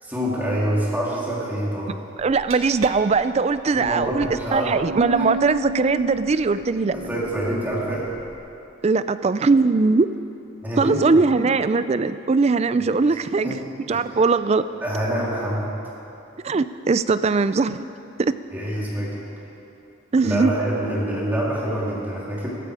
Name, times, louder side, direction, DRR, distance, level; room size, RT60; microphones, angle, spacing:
voice 1, 0.0-2.0 3.7-4.8 5.2-5.3 6.9-8.1 10.6-11.2 13.1-13.6 13.9-14.2 14.8-15.7 18.5-19.2 20.2-22.5, right 1 dB, 10° right, -6 dB, 2.9 m, -26 dB
voice 2, 2.2-6.9 8.8-10.1 10.8-13.6 13.9-14.6 16.4-17.9 18.2-18.3 20.1-20.5, right 4 dB, 30° right, 13 dB, 0.4 m, -20 dB
Glass, 2.2-8.3, right 2 dB, 85° right, 1.3 m, -33 dB
15.5 x 14.5 x 4.9 m, 2.8 s
head